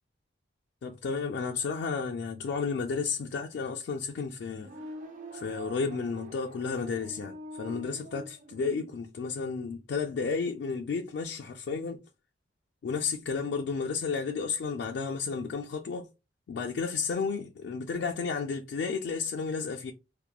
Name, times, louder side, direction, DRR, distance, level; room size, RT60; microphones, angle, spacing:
voice 1, 0.8-4.7 5.3-12.0 12.8-16.1 16.5-19.9, left 5 dB, 75° left, 0.3 m, -32 dB
sound 1, 4.5-8.9, right 1 dB, 45° right, 0.4 m, -45 dB
2.9 x 2.1 x 2.2 m
head